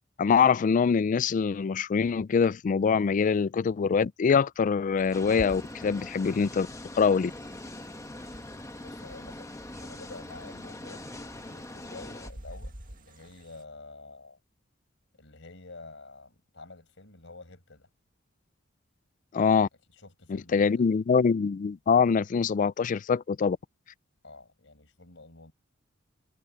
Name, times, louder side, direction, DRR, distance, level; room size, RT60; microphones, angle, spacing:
voice 1, 0.2-6.7 7.0-7.3 19.3-19.7 20.5-23.6, left 6 dB, 40° left, 0.3 m, -24 dB
sound 1, 5.0-13.6, right 1 dB, 45° right, 1.9 m, -49 dB
sound 2, 5.1-12.3, left 1 dB, 15° left, 1.1 m, -42 dB
voice 2, 8.8-14.4 15.1-17.9 19.9-20.9 24.2-25.5, left 3 dB, 70° left, 5.8 m, -49 dB
head